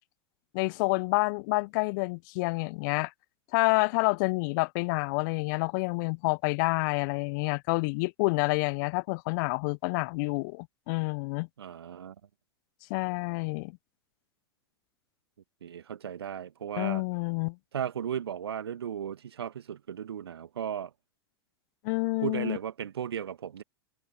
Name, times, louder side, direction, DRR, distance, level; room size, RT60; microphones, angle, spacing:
voice 1, 0.5-3.1 3.5-11.5 12.9-13.7 16.8-17.6 21.8-22.6, left 28 dB, 50° left, 0.8 m, -28 dB
voice 2, 11.6-12.2 15.6-17.0 17.7-20.9 22.2-23.6, right 8 dB, 70° right, 1.9 m, -35 dB
figure-of-eight pair, 90°, 13 cm